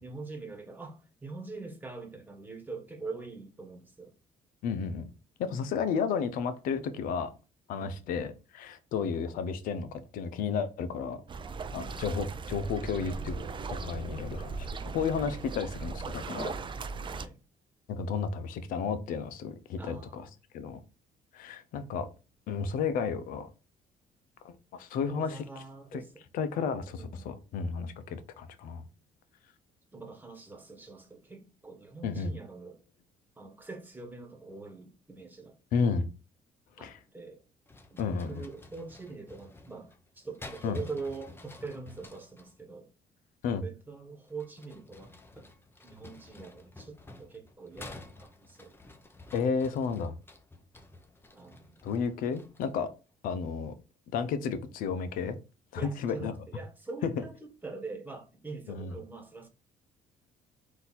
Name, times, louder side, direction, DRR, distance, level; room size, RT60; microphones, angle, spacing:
voice 1, 0.0-4.1 5.4-5.6 7.7-8.0 11.7-12.0 17.1-17.4 19.8-20.3 25.1-26.2 26.9-27.3 29.9-32.8 33.4-35.6 36.8-37.4 37.9-42.9 43.6-45.5 45.8-48.9 51.3-51.8 55.8-59.5, right 3 dB, 15° right, 1.3 m, -44 dB
voice 2, 4.6-5.1 5.4-7.3 7.7-11.2 11.7-13.4 13.7-14.7 14.9-16.6 17.9-20.2 20.5-20.8 21.3-22.1 22.5-23.5 24.4-25.4 25.9-26.0 26.3-28.8 32.0-32.3 35.7-36.1 36.8-37.0 38.0-38.5 40.6-40.8 43.4-43.6 49.3-50.1 51.8-52.9 53.2-53.7 54.1-55.4 55.7-56.4 57.0-57.1 58.7-59.0, left 6 dB, 75° left, 0.7 m, -32 dB
sound 1, 11.3-17.3, right 4 dB, 35° right, 0.5 m, -38 dB
sound 2, 37.7-42.5 44.2-52.8, left 2 dB, 15° left, 0.8 m, -51 dB
4.0 x 2.7 x 4.0 m
cardioid pair, 85°, 14 cm